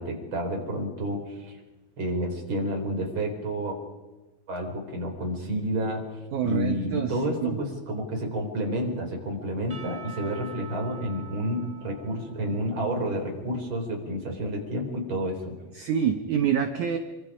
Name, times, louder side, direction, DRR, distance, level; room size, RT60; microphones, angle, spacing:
voice 1, 0.0-1.6 2.0-3.8 4.5-6.0 6.4-15.5, equal, 30° right, 2 dB, 4.8 m, -30 dB
voice 2, 6.3-7.1 7.4-7.6 15.8-17.0, right 8 dB, 85° right, 7 dB, 1.7 m, -26 dB
Percussion / Church bell, 9.7-13.7, right 7 dB, 70° right, 0.7 m, -46 dB
28.0 x 24.5 x 5.1 m, 1.2 s
omnidirectional pair, 5.1 m